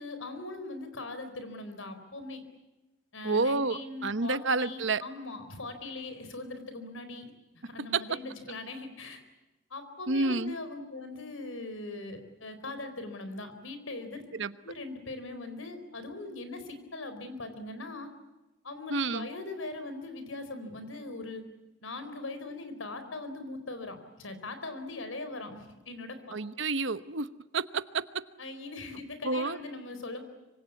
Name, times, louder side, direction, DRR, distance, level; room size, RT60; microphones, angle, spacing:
voice 1, 0.0-2.4 3.1-7.3 7.6-9.2 9.7-14.2 14.6-18.1 18.6-21.4 21.8-26.2 28.4-30.2, left 2 dB, 80° left, 10 dB, 4.4 m, -40 dB
voice 2, 3.2-5.0 7.9-8.0 10.1-10.5 14.3-14.5 18.9-19.3 26.3-27.3 27.5-28.0 29.2-29.6, right 3 dB, 70° right, 13 dB, 1.1 m, -29 dB
25.5 x 25.5 x 8.4 m, 1.1 s
head